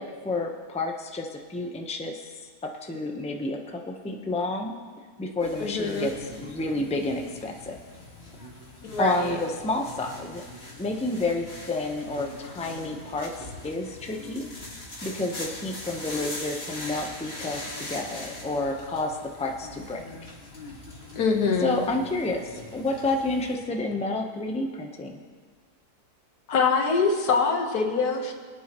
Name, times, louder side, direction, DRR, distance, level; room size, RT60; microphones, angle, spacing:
voice 1, 0.0-2.5 2.8-4.7 5.2-7.8 9.0-10.4 10.8-14.5 15.0-20.0 21.6-25.2, left 2 dB, 5° left, 2 dB, 0.7 m, -30 dB
sound 1, 5.4-23.6, left 2 dB, 40° left, 2.1 m, -41 dB
voice 2, 5.6-6.1 8.8-9.4 21.2-21.8 26.5-28.3, left 4 dB, 85° left, 4 dB, 1.7 m, -24 dB
23.5 x 9.2 x 3.0 m, 1.6 s
omnidirectional pair, 1.6 m